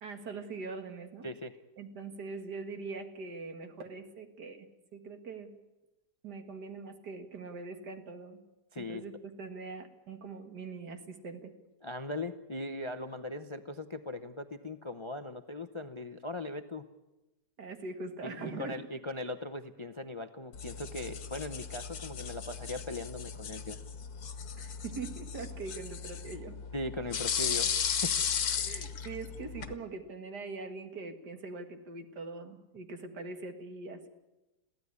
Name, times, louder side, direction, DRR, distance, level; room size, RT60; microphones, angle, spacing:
voice 1, 0.0-1.3 1.8-4.7 4.9-5.5 6.2-8.4 8.8-11.5 17.6-18.8 24.6-26.6 28.5-34.1, right 4 dB, 80° right, 7 dB, 2.4 m, -42 dB
voice 2, 8.7-9.0 11.8-16.8 18.2-23.8 26.7-28.2, left 2 dB, 30° left, 9 dB, 0.5 m, -39 dB
sound 1, 20.5-29.7, left 7 dB, 70° left, 1.7 m, -36 dB
22.5 x 15.5 x 9.8 m, 1.0 s
omnidirectional pair, 1.8 m